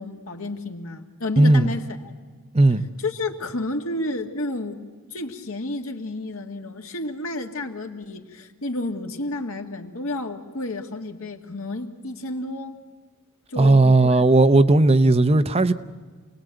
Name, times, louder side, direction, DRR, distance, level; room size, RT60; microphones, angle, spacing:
voice 1, 0.0-2.1 3.0-4.8 5.1-12.8 13.5-14.2, left 2 dB, 75° left, 2.1 m, -31 dB
voice 2, 1.4-1.7 2.5-2.8 13.6-15.7, right 2 dB, 30° right, 0.7 m, -16 dB
28.0 x 19.5 x 9.1 m
head